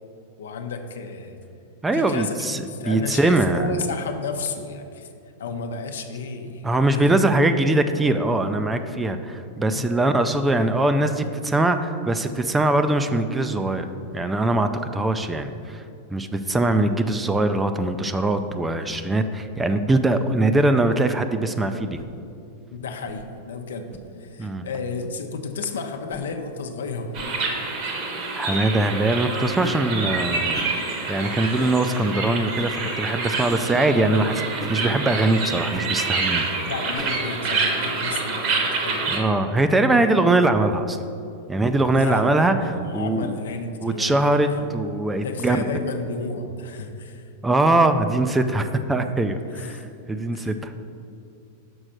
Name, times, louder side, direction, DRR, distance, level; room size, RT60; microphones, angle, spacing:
voice 1, 0.4-1.4 1.9-5.1 5.4-7.2 9.7-9.9 22.7-23.9 24.2-27.6 36.6-39.3 41.9-44.8 45.2-47.3 49.4-49.9 50.3-50.5, left 4 dB, 85° left, 5 dB, 0.7 m, -32 dB
voice 2, 1.8-3.7 6.6-13.9 14.1-15.8 16.1-22.0 24.4-24.7 28.3-30.6 31.1-36.5 39.1-41.0 41.5-42.6 42.9-43.4 43.8-45.6 47.4-49.8 50.1-50.7, right 2 dB, 10° right, 9 dB, 0.4 m, -22 dB
sound 1, 21.9-22.1 23.0-23.2 23.9-24.1 25.0-25.1 26.1-26.3 27.1-27.3 28.5-28.7 29.6-29.8 30.5-30.7 31.6-31.8 32.5-32.7 33.5-33.7 34.6-34.8 35.7-35.9 36.9-37.1, equal, 5° left, 0.8 m, -39 dB
sound 2, 27.1-39.2, right 3 dB, 50° right, 1.2 m, -27 dB
6.2 x 4.4 x 6.4 m, 2.6 s
hypercardioid pair, 125°, 0 cm